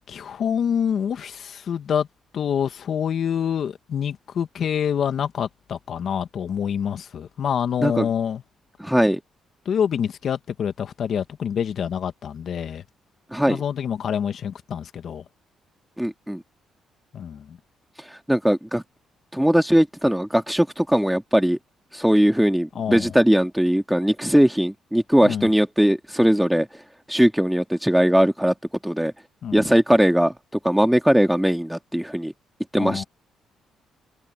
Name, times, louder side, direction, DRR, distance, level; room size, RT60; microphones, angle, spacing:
voice 1, 0.1-2.1 2.3-8.4 9.6-12.8 13.5-15.2 17.1-17.4 22.7-23.1 25.2-25.5 29.4-29.6 32.8-33.0, left 8 dB, 60° left, 1.5 m, -26 dB
voice 2, 7.8-8.1 8.8-9.2 13.3-13.6 16.0-16.4 18.3-18.8 19.3-21.6 21.9-26.7 27.1-28.5 28.8-29.1 29.5-30.3 30.6-32.3 32.7-33.1, equal, 5° right, 2.5 m, -19 dB
cardioid pair, 90°, 0 cm